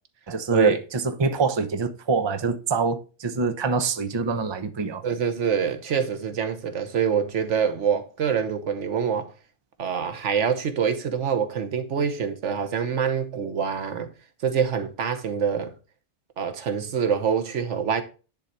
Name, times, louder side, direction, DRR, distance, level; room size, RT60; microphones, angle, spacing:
voice 1, 0.3-5.0, right 4 dB, 25° right, 0.7 m, -25 dB
voice 2, 5.0-9.3 9.8-14.1 14.4-15.7 16.4-18.0, right 7 dB, 90° right, 1.3 m, -25 dB
10.5 x 4.0 x 4.3 m
omnidirectional pair, 1.2 m